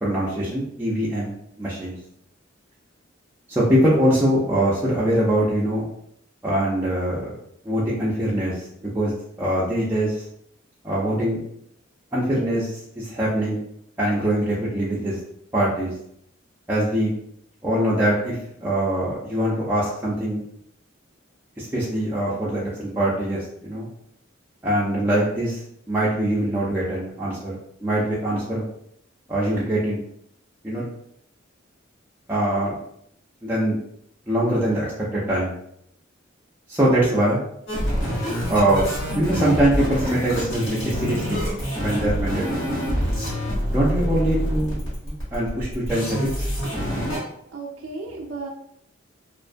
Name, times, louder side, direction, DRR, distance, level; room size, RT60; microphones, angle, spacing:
voice 1, 0.0-2.0 3.5-5.8 6.4-7.4 7.6-8.7 8.9-9.1 9.4-10.2 10.8-11.4 12.1-13.6 14.0-15.2 15.5-15.9 16.7-17.1 17.6-20.4 21.6-23.9 24.6-25.6 25.9-28.6 29.3-30.0 30.6-30.8 32.3-32.8 33.4-33.8 34.3-35.5 36.7-37.4 38.5-38.9 39.2-41.4 41.8-42.6 43.7-46.5, right 1 dB, 10° right, -8 dB, 0.4 m, -23 dB
sound 1, 37.7-47.2, equal, 75° left, 1.3 m, -26 dB
voice 2, 47.5-48.5, right 3 dB, 85° right, -1 dB, 0.4 m, -34 dB
2.5 x 2.2 x 2.5 m, 0.71 s
head